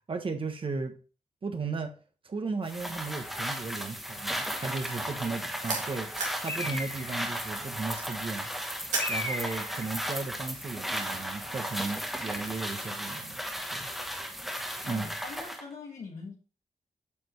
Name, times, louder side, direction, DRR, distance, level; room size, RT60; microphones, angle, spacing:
voice 1, 0.1-0.9 1.4-1.9 2.2-6.1 6.4-8.5 9.1-13.4 13.7-13.9 14.8-15.0, right 4 dB, 45° right, 5 dB, 1.3 m, -35 dB
sound 1, 2.7-15.6, equal, ahead, 1.1 m, -35 dB
sound 2, 4.1-6.5 6.8-9.2, right 3 dB, 85° right, 2.4 m, -36 dB
Bird, 6.5-7.3 9.0-9.9, left 1 dB, 20° left, 1.9 m, -35 dB
voice 2, 14.8-16.4, left 4 dB, 85° left, -4 dB, 1.7 m, -43 dB
8.4 x 5.2 x 3.2 m, 0.36 s
wide cardioid pair, 95°, 12 cm